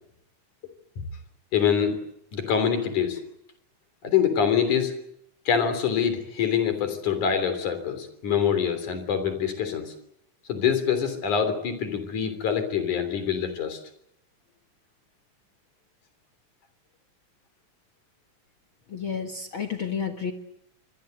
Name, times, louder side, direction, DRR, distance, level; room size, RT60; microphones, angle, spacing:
voice 1, 1.5-2.0 2.3-3.2 4.0-4.9 5.5-9.9 10.5-13.8, left 7 dB, 85° left, 10 dB, 4.9 m, -25 dB
voice 2, 18.9-20.3, left 6 dB, 50° left, 5 dB, 2.2 m, -31 dB
26.0 x 21.5 x 8.1 m, 0.78 s
omnidirectional pair, 3.4 m